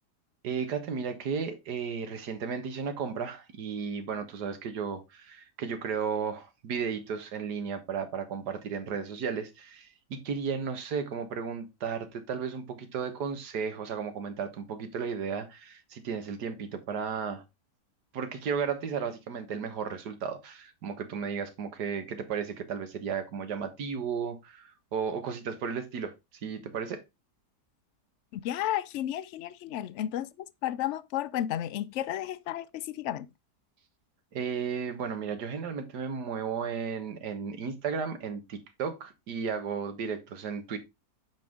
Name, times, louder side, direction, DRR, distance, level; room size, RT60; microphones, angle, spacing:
voice 1, 0.4-17.4 18.1-26.1 26.4-27.0 34.3-40.8, right 6 dB, 80° right, 1.8 m, -34 dB
voice 2, 28.3-33.3, left 12 dB, 75° left, 0.6 m, -33 dB
7.4 x 5.4 x 3.5 m
omnidirectional pair, 1.7 m